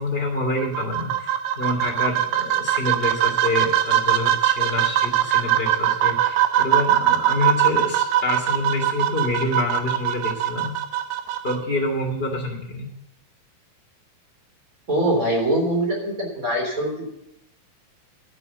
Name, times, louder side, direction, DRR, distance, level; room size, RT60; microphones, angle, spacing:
voice 1, 0.0-10.7 11.4-12.9, left 2 dB, 15° left, -1 dB, 2.4 m, -27 dB
sound 1, 0.6-11.6, right 12 dB, 85° right, 2.9 m, -22 dB
voice 2, 14.9-17.1, right 1 dB, 20° right, -1 dB, 3.5 m, -23 dB
10.5 x 8.5 x 6.8 m, 0.83 s
omnidirectional pair, 4.4 m